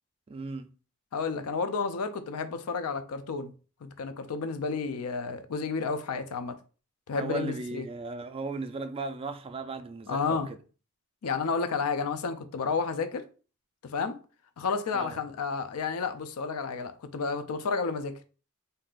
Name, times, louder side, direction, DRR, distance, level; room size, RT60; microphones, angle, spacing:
voice 1, 0.3-0.7 7.1-10.6 14.9-15.2, right 3 dB, 25° right, 0.3 m, -36 dB
voice 2, 1.1-3.5 3.8-6.6 7.1-7.9 10.1-10.5 11.2-13.2 13.8-14.2 14.6-18.2, left 5 dB, 75° left, 0.4 m, -31 dB
2.7 x 2.4 x 3.7 m
head